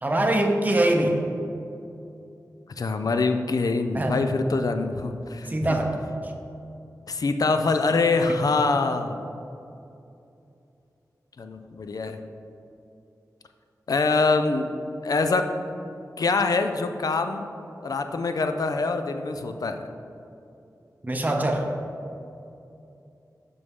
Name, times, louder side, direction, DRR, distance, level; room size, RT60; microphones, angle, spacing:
voice 1, 0.0-1.2 3.9-4.2 5.5-6.0 8.3-8.4 21.0-21.7, right 1 dB, 25° right, 2 dB, 0.6 m, -23 dB
voice 2, 2.8-5.8 7.1-9.3 11.4-12.2 13.9-14.8 15.0-15.5 16.2-17.5 17.8-19.8, left 3 dB, 65° left, 7 dB, 0.4 m, -24 dB
6.7 x 5.3 x 3.6 m, 2.7 s
cardioid pair, 55°, 7 cm